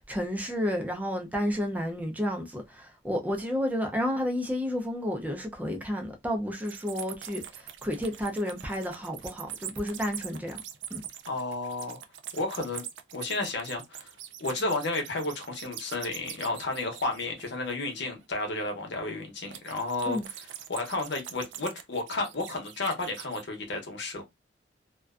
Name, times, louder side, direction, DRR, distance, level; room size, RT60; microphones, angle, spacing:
voice 1, 0.0-10.6 10.9-11.0 20.1-20.3, equal, 10° right, 0.4 m, -31 dB
sound 1, 6.6-17.9 19.5-23.5, right 10 dB, 75° right, 0.4 m, -43 dB
voice 2, 11.3-12.0 12.3-12.8 13.1-14.1 14.4-20.2 20.7-24.2, left 2 dB, 70° left, 0.8 m, -32 dB
2.4 x 2.2 x 2.3 m
head